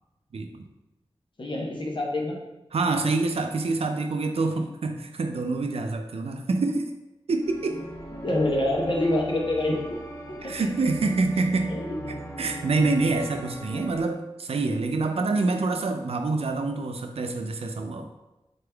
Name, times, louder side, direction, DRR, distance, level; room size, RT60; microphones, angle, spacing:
voice 1, 0.3-0.6 2.7-6.9 7.3-7.9 10.4-11.8 12.4-18.1, right 3 dB, 90° right, 5 dB, 0.4 m, -26 dB
voice 2, 1.4-2.4 8.1-10.0 10.3-10.5 11.7-12.1 13.7-13.8, left 1 dB, 55° left, -2 dB, 1.0 m, -27 dB
sound 1, 7.4-14.0, right 1 dB, 35° left, 1.1 m, -40 dB
4.1 x 3.5 x 3.4 m, 0.99 s
wide cardioid pair, 80°, 10 cm